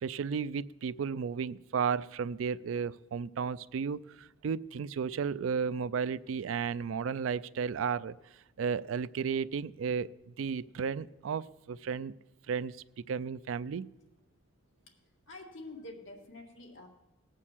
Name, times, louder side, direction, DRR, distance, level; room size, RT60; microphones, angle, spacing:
voice 1, 0.0-8.2 8.6-12.2 12.5-13.9, right 6 dB, 80° right, 17 dB, 0.4 m, -33 dB
voice 2, 15.3-16.9, left 2 dB, 75° left, 1 dB, 2.0 m, -47 dB
18.0 x 6.4 x 7.4 m, 1.0 s
head